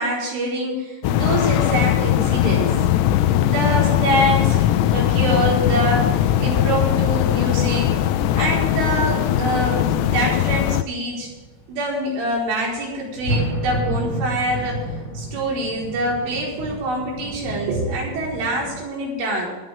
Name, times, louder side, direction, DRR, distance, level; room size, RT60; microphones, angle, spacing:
voice 1, 0.0-2.7 3.4-7.9 8.4-11.3 11.7-14.8 15.2-19.5, right 1 dB, 85° right, -3 dB, 7.1 m, -25 dB
sound 1, 1.0-10.8, left 12 dB, 80° left, 2.7 m, -19 dB
sound 2, 5.7-18.8, right 1 dB, 35° left, 5.2 m, -32 dB
26.5 x 9.3 x 3.6 m, 1.2 s
omnidirectional pair, 5.5 m